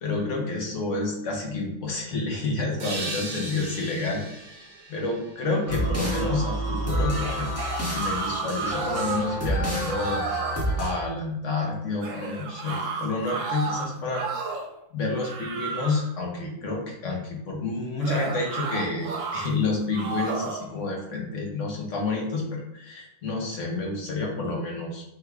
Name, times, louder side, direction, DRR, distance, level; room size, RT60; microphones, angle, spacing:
voice 1, 0.0-4.2 4.5-7.5 7.9-10.2 10.8-14.3 14.9-25.0, left 3 dB, 60° left, 0 dB, 1.2 m, -29 dB
sound 1, 2.8-6.3, right 2 dB, 45° right, 0.6 m, -38 dB
sound 2, 5.7-10.9, equal, 10° left, 0.9 m, -28 dB
sound 3, 7.0-9.4 9.7-10.6 12.0-14.7 15.1-16.1 18.0-19.5 19.9-20.7, right 4 dB, 70° right, 1.0 m, -32 dB
3.5 x 3.3 x 3.4 m, 0.82 s
omnidirectional pair, 1.5 m